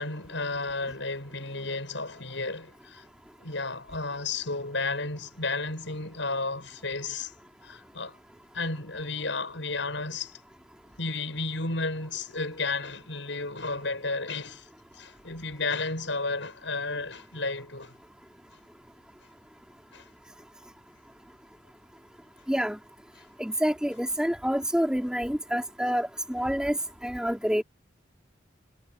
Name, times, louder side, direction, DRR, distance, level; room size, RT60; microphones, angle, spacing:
voice 1, 0.0-3.1 3.4-7.3 7.6-8.2 8.5-10.4 11.0-14.7 14.9-17.9 19.9-20.1, left 3 dB, 80° left, 7.1 m, -32 dB
voice 2, 22.5-22.8 23.4-26.8 27.0-27.6, equal, 5° right, 3.9 m, -27 dB
head